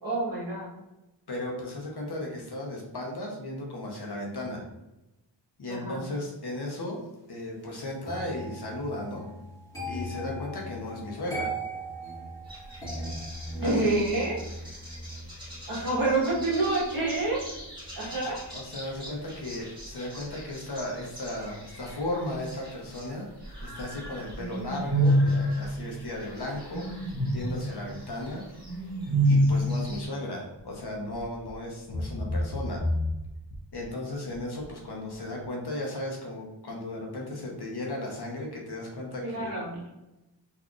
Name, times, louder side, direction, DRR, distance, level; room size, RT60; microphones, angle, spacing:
voice 1, 0.0-0.7 5.7-6.0 13.6-14.4 15.7-17.5 17.9-18.4 39.2-39.8, right 2 dB, 50° right, -5 dB, 1.4 m, -27 dB
voice 2, 1.3-4.6 5.6-7.0 7.3-9.3 9.8-11.5 13.6-13.9 18.5-23.3 23.6-26.9 27.3-28.5 29.2-32.8 33.7-39.5, left 1 dB, 60° left, -1 dB, 0.9 m, -35 dB
sound 1, 8.0-19.0 19.3-19.7, right 1 dB, 5° left, 1.3 m, -40 dB
sound 2, 12.5-23.1 23.4-30.1, equal, 10° right, 1.5 m, -31 dB
sound 3, 30.6-30.8 31.1-31.5 31.9-33.9 34.3-34.7 35.1-35.2, left 1 dB, 30° left, 0.4 m, -31 dB
3.6 x 2.7 x 2.4 m, 0.97 s
wide cardioid pair, 80°, 44 cm